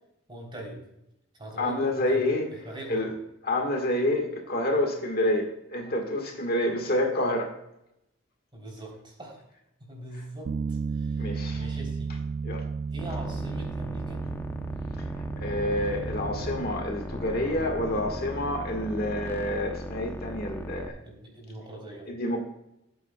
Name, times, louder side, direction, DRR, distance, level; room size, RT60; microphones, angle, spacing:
voice 1, 0.3-0.8 1.4-3.1 8.5-9.4 9.8-12.2 12.9-14.2 21.0-22.1, right 1 dB, 25° right, 0 dB, 3.5 m, -42 dB
voice 2, 1.6-2.4 2.9-3.1 3.4-7.5 11.2-11.7 12.4-12.7 15.0-21.0 22.1-22.4, left 1 dB, 50° left, 3 dB, 1.6 m, -28 dB
Bass guitar, 10.5-16.7, right 5 dB, 50° right, 0.4 m, -33 dB
sound 1, 13.0-20.9, left 1 dB, 10° left, 0.7 m, -37 dB
17.5 x 8.4 x 2.3 m, 0.82 s
head